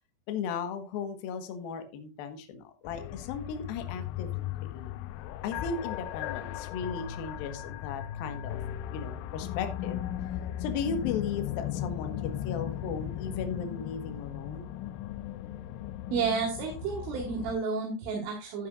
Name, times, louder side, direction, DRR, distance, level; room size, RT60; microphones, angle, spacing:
voice 1, 0.3-4.9 5.4-8.6 8.9-10.0 10.6-14.7, left 6 dB, 65° left, 7 dB, 2.7 m, -36 dB
sound 1, 2.9-17.6, left 12 dB, 80° left, 2.9 m, -37 dB
voice 2, 16.1-18.7, right 5 dB, 80° right, -1 dB, 4.5 m, -31 dB
12.0 x 9.9 x 2.5 m, 0.32 s
omnidirectional pair, 5.6 m